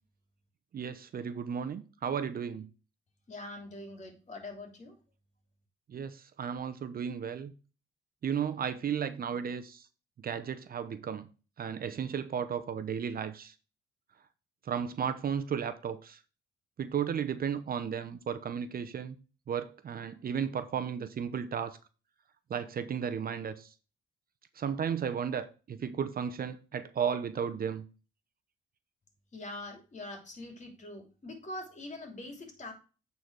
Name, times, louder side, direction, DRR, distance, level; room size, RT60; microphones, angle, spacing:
voice 1, 0.7-2.7 5.9-7.5 8.2-9.8 10.2-11.3 11.6-13.5 14.7-16.2 16.8-19.2 19.5-21.8 22.5-23.7 24.6-27.8, right 7 dB, 50° right, 0.8 m, -34 dB
voice 2, 3.3-4.9 29.3-32.7, left 2 dB, 35° left, 2.9 m, -43 dB
8.5 x 4.1 x 4.7 m
cardioid pair, 90°, 20 cm